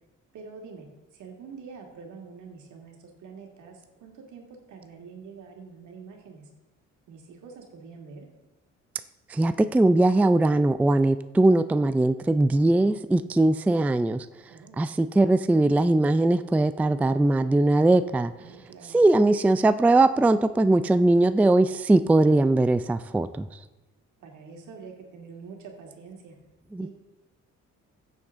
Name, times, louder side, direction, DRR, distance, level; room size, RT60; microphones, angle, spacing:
voice 1, 0.3-6.5 7.1-8.3 14.5-14.8 18.4-19.0 24.2-26.4 26.8-26.9, right 5 dB, 75° right, 1 dB, 2.4 m, -45 dB
voice 2, 9.3-14.3 14.8-18.3 18.9-23.5 26.7-26.9, right 2 dB, 5° right, 12 dB, 0.3 m, -20 dB
14.0 x 7.9 x 3.7 m, 1.1 s
cardioid pair, 90°, 30 cm